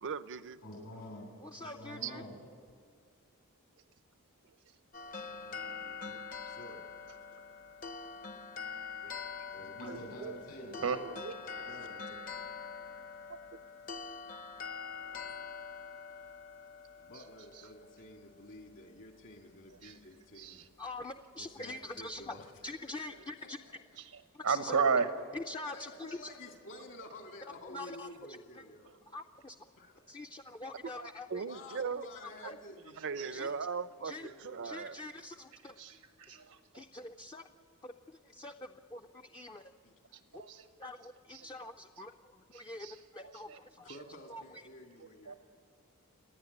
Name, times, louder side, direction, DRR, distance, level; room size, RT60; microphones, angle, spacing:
voice 1, 0.0-0.6 2.0-2.1 6.1-6.2 9.8-10.4 10.9-11.3 13.3-13.6 31.3-32.1 33.0-35.0, right 5 dB, 60° right, 15 dB, 0.6 m, -39 dB
voice 2, 0.6-2.4 9.6-10.8, equal, 90° left, -3 dB, 7.5 m, -47 dB
voice 3, 1.4-2.2 20.8-22.4 22.6-23.6 24.3-24.7 25.3-26.3 27.7-28.6 29.1-29.7 30.1-31.5 31.8-31.9 32.4-32.6 33.3-33.5 34.0-34.3 34.6-35.8 36.2-36.4 36.7-37.5 37.8-39.7 40.3-40.4 40.8-43.9 44.3-44.6, left 2 dB, 20° left, 4 dB, 0.5 m, -45 dB
sound 1, 4.9-18.2, left 5 dB, 40° left, 0.8 m, -44 dB
voice 4, 5.0-6.8 8.9-9.1 9.5-10.4 11.4-12.2 13.0-13.1 14.9-15.3 17.0-20.6 21.4-23.7 25.6-28.9 29.8-30.0 31.4-33.6 34.0-35.1 39.8-40.4 43.8-45.4, left 1 dB, 60° left, 3 dB, 2.2 m, -52 dB
voice 5, 24.4-25.1 31.0-31.1 33.2-33.3 35.8-36.6 40.3-40.6 42.8-42.9 43.5-43.6 45.0-45.3, right 5 dB, 85° right, 9 dB, 1.1 m, -32 dB
29.0 x 9.9 x 9.8 m, 2.2 s
head